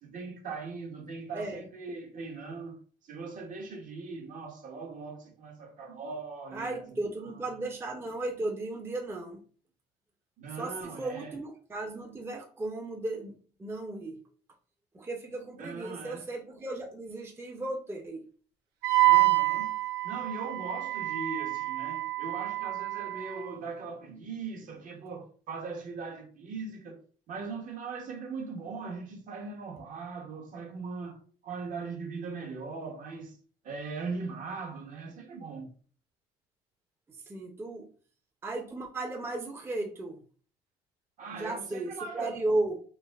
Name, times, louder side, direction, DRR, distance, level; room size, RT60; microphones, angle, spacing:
voice 1, 0.0-7.6 10.4-11.4 15.6-16.3 19.0-19.8 20.0-27.0 27.3-33.4 33.6-35.7 41.2-42.3, right 4 dB, 50° right, 0.8 m, -40 dB
voice 2, 6.5-9.4 10.6-13.3 13.6-14.2 14.9-18.2 37.3-37.9 38.4-40.2 41.3-42.8, right 2 dB, 15° right, 0.4 m, -35 dB
Wind instrument woodwind instrument, 18.8-23.5, right 20 dB, 80° right, 0.6 m, -27 dB
3.2 x 2.4 x 2.2 m
cardioid pair, 110°, 17 cm